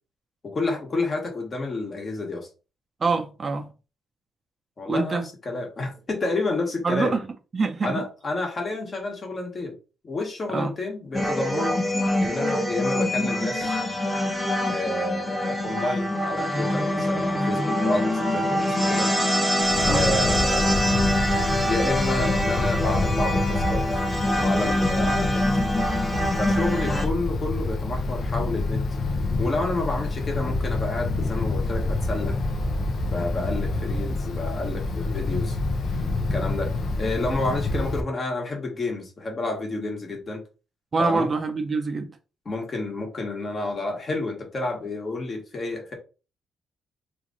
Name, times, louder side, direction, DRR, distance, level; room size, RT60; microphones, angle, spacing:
voice 1, 0.4-2.5 4.8-5.2 5.4-7.2 7.8-9.7 10.0-11.8 12.2-13.8 14.7-19.1 19.9-21.1 21.7-24.0 24.4-25.4 26.4-28.8 29.4-32.4 33.1-35.6 36.3-36.7 37.0-40.4 41.0-41.3 42.4-45.9, left 2 dB, 40° left, 1.3 m, -30 dB
voice 2, 3.0-3.7 4.9-5.3 6.8-7.2 7.5-8.0 10.5-10.7 19.8-20.1 40.9-42.1, right 4 dB, 35° right, 0.5 m, -25 dB
sound 1, 11.1-27.1, left 1 dB, ahead, 0.9 m, -24 dB
Wind, 19.6-38.0, left 2 dB, 55° left, 0.6 m, -27 dB
3.0 x 2.5 x 3.9 m
cardioid pair, 90°, 0 cm